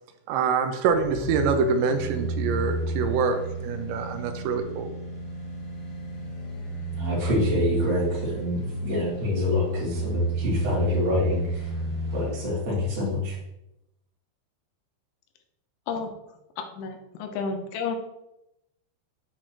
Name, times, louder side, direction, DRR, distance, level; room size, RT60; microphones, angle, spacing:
voice 1, 0.3-4.9, right 5 dB, 80° right, 6 dB, 2.8 m, -25 dB
sound 1, 0.9-12.5 12.8-12.9, right 2 dB, 40° left, 2.8 m, -32 dB
voice 2, 6.9-11.7 12.1-13.4, left 2 dB, 30° right, -7 dB, 2.7 m, -26 dB
voice 3, 16.7-18.0, left 5 dB, 90° left, 5 dB, 3.2 m, -31 dB
8.8 x 6.2 x 3.0 m, 0.88 s
omnidirectional pair, 5.5 m